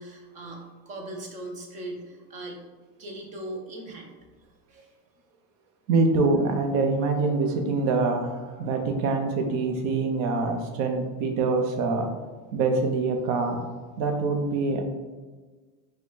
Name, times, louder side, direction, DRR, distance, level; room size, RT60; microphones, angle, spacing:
voice 1, 0.0-2.6 3.0-4.1 4.7-4.9, right 1 dB, 15° right, 1 dB, 0.4 m, -39 dB
voice 2, 5.9-12.1 12.5-13.6 14.0-14.8, right 3 dB, 40° right, 4 dB, 0.7 m, -25 dB
4.9 x 2.3 x 3.8 m, 1.3 s
supercardioid pair, 135°, 48 cm